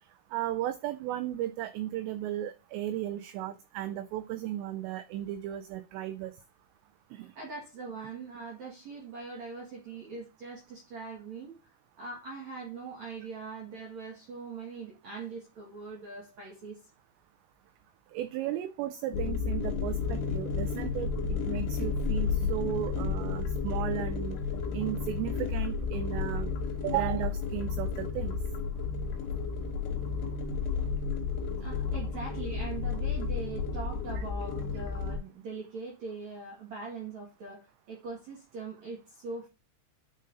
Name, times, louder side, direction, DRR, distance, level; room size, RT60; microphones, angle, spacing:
voice 1, 0.3-6.3 7.1-7.3 18.1-21.1 21.5-24.4 24.7-26.5 26.8-28.3, right 12 dB, 90° right, 2.5 m, -35 dB
voice 2, 7.4-11.6 12.0-16.8 31.6-39.5, right 4 dB, 65° right, 1.7 m, -41 dB
sound 1, 19.1-35.2, left 5 dB, 70° left, 3.4 m, -32 dB
9.2 x 5.2 x 2.5 m
omnidirectional pair, 5.6 m